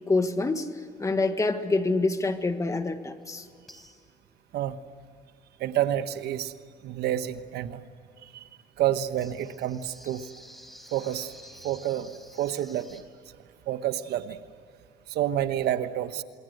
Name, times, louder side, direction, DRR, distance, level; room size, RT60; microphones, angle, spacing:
voice 1, 0.1-0.7 1.0-3.5, left 3 dB, 20° left, 7 dB, 1.8 m, -26 dB
sound 1, 3.2-3.3 3.7-4.4 9.2-13.0, equal, ahead, 4.5 m, -51 dB
voice 2, 5.6-6.5 6.8-7.8 8.2-8.4 8.8-10.3 10.9-11.3 11.6-12.1 12.4-13.0 13.7-14.4 15.1-16.2, right 11 dB, 75° right, 9 dB, 1.3 m, -29 dB
27.5 x 22.5 x 8.0 m, 2.2 s
cardioid pair, 110°, 17 cm